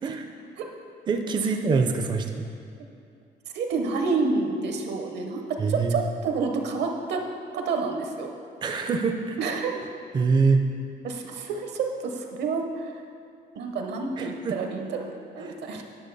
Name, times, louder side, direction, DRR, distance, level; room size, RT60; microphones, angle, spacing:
voice 1, 1.1-2.4 5.6-6.0 8.6-9.4 10.1-10.6 14.2-14.6, right 4 dB, 25° right, 5 dB, 0.4 m, -24 dB
voice 2, 3.5-7.2 7.5-8.3 9.4-9.8 11.0-12.9 13.5-15.8, right 4 dB, 65° right, 3 dB, 0.8 m, -29 dB
9.8 x 6.2 x 4.0 m, 2.4 s
cardioid pair, 165°, 19 cm